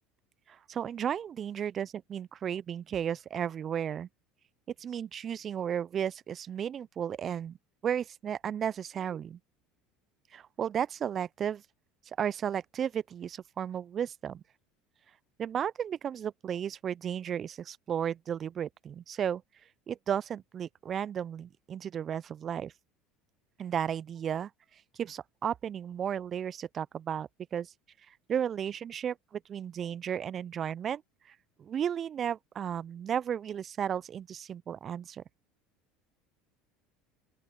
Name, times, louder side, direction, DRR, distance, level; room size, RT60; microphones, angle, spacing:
voice 1, 0.5-4.1 4.8-7.6 7.8-9.4 10.3-11.6 12.2-14.4 15.4-19.4 19.9-22.7 23.6-24.5 25.0-27.7 28.3-31.0 31.3-35.2, right 8 dB, 40° right, 0.7 m, -34 dB
open air
hypercardioid pair, 70°, 0 cm